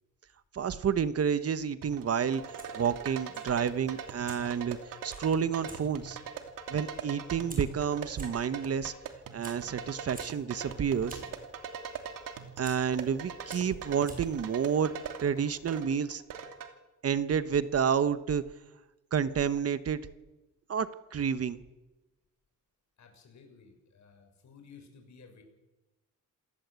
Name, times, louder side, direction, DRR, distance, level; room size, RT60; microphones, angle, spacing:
voice 1, 0.5-6.2 6.7-8.9 9.3-11.2 12.6-14.9 15.2-16.2 17.0-18.4 19.1-20.0 20.7-21.6, right 7 dB, 45° right, 13 dB, 1.1 m, -30 dB
sound 1, 1.8-16.7, right 7 dB, 85° right, 2.9 m, -42 dB
Fire, 2.4-15.8, right 2 dB, 25° right, 6.4 m, -53 dB
voice 2, 23.0-25.4, left 5 dB, 60° left, 5 dB, 6.7 m, -55 dB
28.0 x 19.0 x 8.3 m, 1.1 s
cardioid pair, 135°, 32 cm